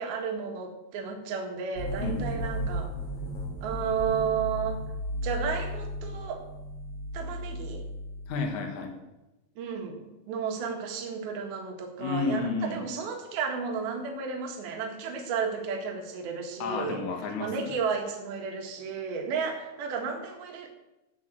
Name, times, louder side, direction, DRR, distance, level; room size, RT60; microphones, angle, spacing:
voice 1, 0.0-2.9 3.6-4.8 5.2-6.4 7.1-7.8 9.6-17.0 17.4-20.7, right 6 dB, 65° right, 3 dB, 3.3 m, -33 dB
sound 1, 1.7-8.5, equal, 35° left, 2.5 m, -35 dB
voice 2, 2.0-2.4 8.3-9.0 12.0-12.8 16.6-17.7, left 4 dB, 55° left, 3 dB, 2.4 m, -31 dB
13.5 x 6.2 x 7.4 m, 1.0 s
omnidirectional pair, 5.2 m